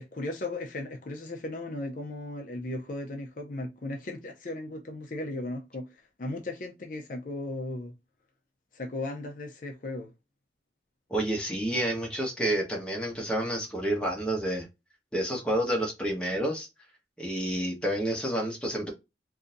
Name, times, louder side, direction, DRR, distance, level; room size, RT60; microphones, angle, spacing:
voice 1, 0.0-7.9 8.7-10.1, left 2 dB, 50° left, 0.5 m, -36 dB
voice 2, 11.1-14.7 15.1-16.7 17.2-18.9, right 1 dB, 5° left, 1.0 m, -29 dB
3.8 x 2.7 x 2.5 m
head